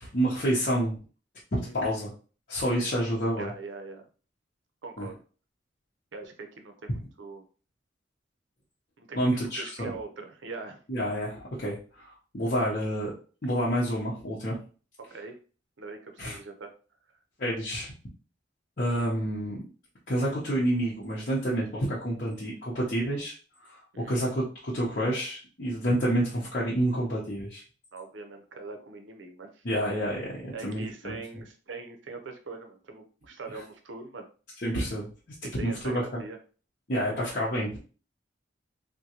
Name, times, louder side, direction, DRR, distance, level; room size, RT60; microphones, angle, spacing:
voice 1, 0.0-1.0 1.5-2.1 2.5-3.5 5.0-5.1 9.1-9.9 10.9-13.1 13.4-14.6 16.2-16.4 17.4-17.9 18.8-19.6 20.1-23.3 23.6-27.6 29.6-31.1 34.6-35.1 35.6-36.2 36.9-37.8, equal, 50° left, -6 dB, 0.8 m, -29 dB
voice 2, 3.4-4.0 4.8-5.2 6.1-7.5 9.0-10.8 15.1-15.4 15.8-16.7 23.9-24.1 27.9-29.6 30.5-34.3 35.4-36.4, right 3 dB, 85° right, 5 dB, 0.6 m, -42 dB
3.6 x 2.2 x 2.9 m, 0.38 s
head